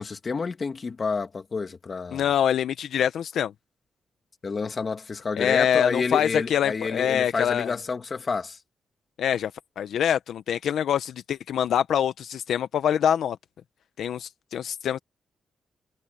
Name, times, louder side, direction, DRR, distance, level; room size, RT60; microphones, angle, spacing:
voice 1, 0.0-2.3 4.4-8.6, left 4 dB, 35° left, 2.1 m, -29 dB
voice 2, 2.1-3.5 5.4-7.7 9.2-9.5 9.8-13.4 14.0-15.0, left 9 dB, 80° left, 0.7 m, -25 dB
cardioid pair, 120°, 0 cm